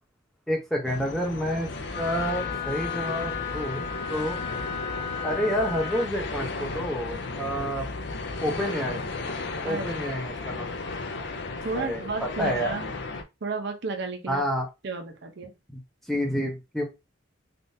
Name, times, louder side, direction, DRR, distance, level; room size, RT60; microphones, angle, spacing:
voice 1, 0.5-1.7 2.0-3.8 4.1-4.4 5.2-7.9 8.4-9.0 9.6-10.7 11.7-12.7 14.3-14.7 15.7-15.8 16.1-16.8, equal, ahead, 0 dB, 0.7 m, -29 dB
sound 1, 0.9-13.2, left 3 dB, 55° left, 0.5 m, -34 dB
Wind instrument woodwind instrument, 1.9-6.1, left 7 dB, 25° left, 1.1 m, -34 dB
voice 2, 11.6-12.9 13.4-14.4 14.8-15.5, right 4 dB, 55° right, 4 dB, 0.6 m, -32 dB
3.6 x 2.5 x 2.6 m, 0.25 s
head